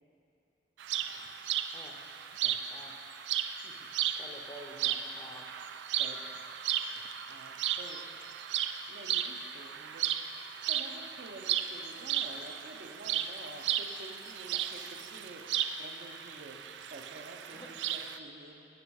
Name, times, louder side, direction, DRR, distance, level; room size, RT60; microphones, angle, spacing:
sound 1, 0.8-18.2, right 10 dB, 80° right, 0.3 m, -35 dB
voice 1, 3.5-4.0 6.0-6.4 7.3-8.1 8.5-10.2 10.6-18.7, right 2 dB, 55° right, 3 dB, 0.7 m, -50 dB
voice 2, 4.2-5.5 17.5-17.7, equal, 20° left, 2 dB, 0.6 m, -49 dB
11.5 x 6.2 x 4.7 m, 2.9 s
head